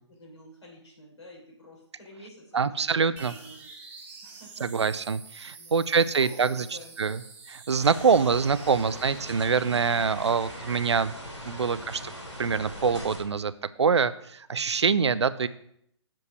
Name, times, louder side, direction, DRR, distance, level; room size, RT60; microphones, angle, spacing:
voice 1, 0.1-3.7 4.0-4.7 5.6-7.3, equal, 70° left, -2 dB, 3.8 m, -50 dB
voice 2, 2.5-3.3 4.6-6.7 7.0-7.2 7.5-11.1 11.4-12.1 12.4-13.5 13.8-15.5, right 5 dB, 70° right, 16 dB, 0.5 m, -25 dB
sound 1, 3.2-10.8, right 4 dB, 10° right, 1.1 m, -48 dB
sound 2, 7.8-13.2, equal, 90° left, 3.1 m, -41 dB
7.3 x 5.3 x 5.8 m, 0.72 s
figure-of-eight pair, 135°, 15 cm